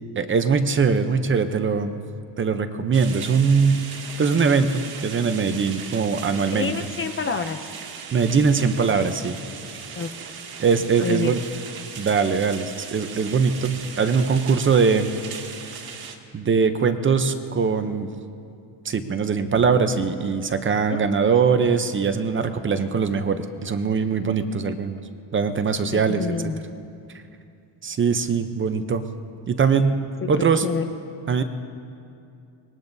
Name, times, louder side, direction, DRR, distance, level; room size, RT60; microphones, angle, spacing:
voice 1, 0.2-2.0 2.4-3.8 4.2-6.7 8.1-9.3 10.6-11.4 11.9-15.1 16.3-18.1 18.8-24.9 25.3-26.3 27.8-29.0 29.5-30.0 30.3-30.6 31.3-31.4, right 5 dB, 25° right, 9 dB, 0.6 m, -21 dB
sound 1, 2.9-16.2, right 6 dB, 50° right, 1.6 m, -38 dB
voice 2, 6.5-7.7 10.0-10.1 11.0-11.3 20.9-21.0 25.9-26.6 30.2-30.9, left 5 dB, 25° left, 7 dB, 0.5 m, -28 dB
24.5 x 21.0 x 2.7 m, 2.5 s
cardioid pair, 155°, 47 cm